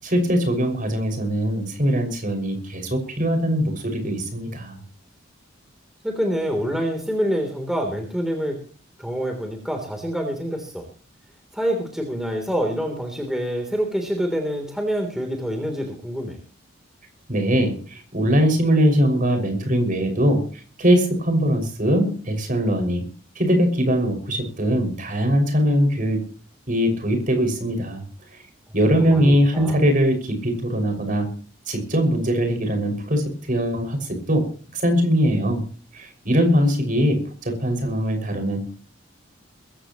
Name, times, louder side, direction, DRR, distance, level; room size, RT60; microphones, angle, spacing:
voice 1, 0.0-4.8 17.3-20.4 20.8-23.0 23.4-26.2 26.7-28.0 28.7-31.3 31.7-34.4 34.7-35.6 35.9-38.6, equal, 40° right, 4 dB, 6.1 m, -21 dB
voice 2, 6.0-8.6 9.0-10.8 11.5-16.4 29.0-29.8, equal, ahead, 2 dB, 3.3 m, -26 dB
22.0 x 16.0 x 3.1 m, 0.39 s
head